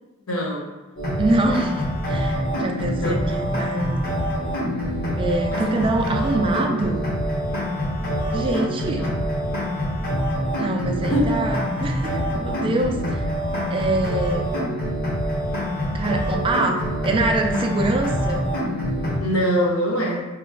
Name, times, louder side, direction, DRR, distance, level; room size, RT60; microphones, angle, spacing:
voice 1, 0.3-0.7 3.0-3.3 5.5-5.6 9.0-9.1 11.1-11.4 19.2-20.3, equal, 90° left, -2 dB, 0.8 m, -23 dB
sound 1, 1.0-19.2, equal, 45° left, 1.0 m, -25 dB
voice 2, 1.2-4.1 5.2-7.1 8.3-9.1 10.6-13.2 13.7-14.6 15.9-18.5, right 2 dB, 25° right, 2 dB, 0.3 m, -25 dB
2.9 x 2.4 x 3.7 m, 1.2 s
head